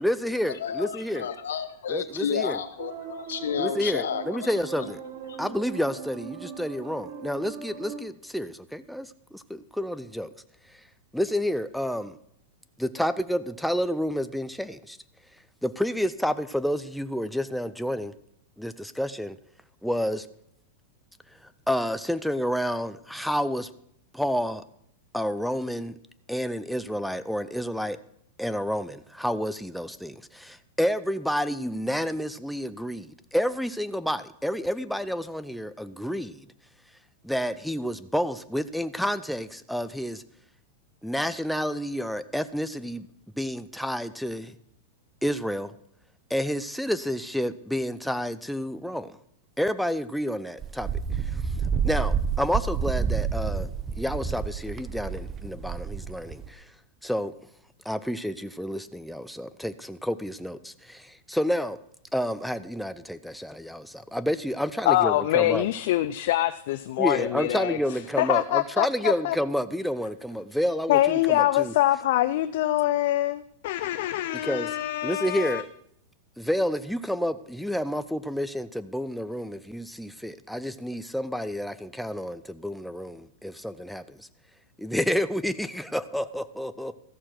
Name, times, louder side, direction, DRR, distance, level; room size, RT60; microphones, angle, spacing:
voice 1, 0.0-1.3 1.9-2.6 3.6-5.0 5.4-10.3 11.1-12.2 12.8-15.0 15.6-18.1 18.6-19.4 19.8-20.3 21.7-23.7 24.1-24.6 25.1-25.9 26.3-28.0 28.4-36.5 37.2-40.2 41.0-43.1 43.4-44.5 45.2-45.7 46.3-49.2 49.6-51.4 51.8-53.7 54.0-56.6 57.0-57.3 57.9-61.8 62.1-65.7 67.0-71.7 74.4-74.7 75.0-75.7 76.4-84.3 84.8-87.0, equal, ahead, 12 dB, 0.5 m, -29 dB
voice 2, 0.6-4.9 5.3-5.4, left 7 dB, 85° left, 12 dB, 1.0 m, -31 dB
sound 1, 2.8-8.0, right 7 dB, 60° right, 1.5 m, -40 dB
Wind, 50.6-56.5, right 6 dB, 25° right, 0.9 m, -29 dB
voice 3, 64.9-67.8 68.2-69.4 70.9-75.6, left 14 dB, 65° left, 13 dB, 0.4 m, -24 dB
14.0 x 6.4 x 5.9 m, 0.72 s
hypercardioid pair, 120°, 0 cm